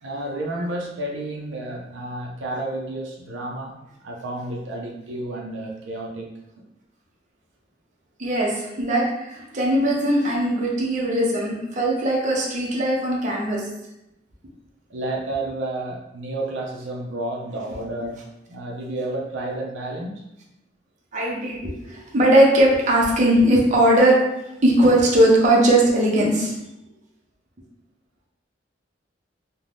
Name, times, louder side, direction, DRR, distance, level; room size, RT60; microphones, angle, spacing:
voice 1, 0.0-3.8 4.0-6.7 14.9-18.2 18.5-20.2, right 1 dB, 85° right, 0 dB, 0.5 m, -31 dB
voice 2, 8.2-13.6 21.1-24.2 24.6-26.5, right 1 dB, 40° right, -2 dB, 0.6 m, -19 dB
2.6 x 2.1 x 3.3 m, 0.88 s
head